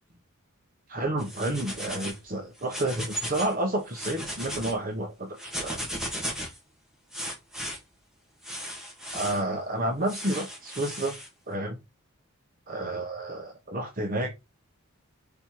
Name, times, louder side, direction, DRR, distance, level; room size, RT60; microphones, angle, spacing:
voice 1, 0.9-5.8 9.1-11.1 11.5-11.8 12.7-14.3, right 1 dB, 40° right, 1.1 m, -30 dB
sound 1, 1.2-2.2 2.6-3.5 3.9-4.7 5.4-6.6 7.1-7.8 8.4-9.4 10.1-11.3, equal, ahead, 1.7 m, -36 dB
5.4 x 4.4 x 4.6 m
head